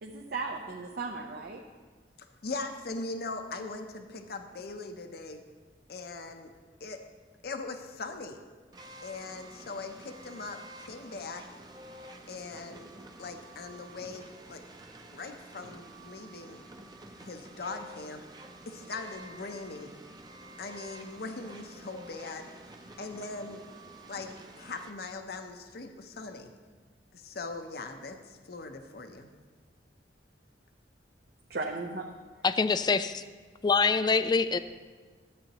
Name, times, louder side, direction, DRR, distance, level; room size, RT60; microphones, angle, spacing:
voice 1, 0.0-1.6 31.5-32.1, right 3 dB, 60° right, 1 dB, 0.7 m, -36 dB
voice 2, 2.4-5.4 5.9-6.5 6.8-7.0 7.4-8.4 9.0-11.4 12.3-12.9 13.2-14.6 15.1-16.6 17.2-18.2 18.7-19.9 20.6-22.5 23.0-23.6 24.1-24.3 24.6-26.5 27.1-29.3, left 3 dB, 60° left, 6 dB, 0.7 m, -40 dB
sound 1, 8.7-24.9, right 1 dB, 25° right, 0.6 m, -49 dB
voice 3, 32.4-33.2 33.6-34.6, left 4 dB, 25° left, 12 dB, 0.3 m, -25 dB
13.5 x 8.8 x 3.0 m, 1.5 s
head